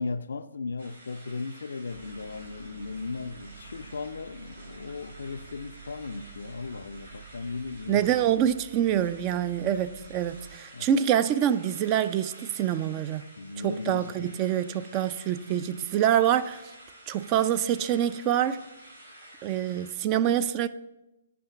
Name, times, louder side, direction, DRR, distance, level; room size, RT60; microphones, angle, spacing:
voice 1, 0.0-8.2 10.7-10.9 13.4-14.4, left 4 dB, 65° left, 0.4 m, -36 dB
sound 1, 0.8-19.9, right 1 dB, 85° right, 3.8 m, -51 dB
sound 2, 1.9-10.6, right 6 dB, 60° right, 1.0 m, -49 dB
voice 2, 7.9-13.3 13.6-16.6 17.1-18.6 19.4-20.7, right 10 dB, 25° right, 0.3 m, -26 dB
8.4 x 5.0 x 7.1 m
figure-of-eight pair, 130°, 0 cm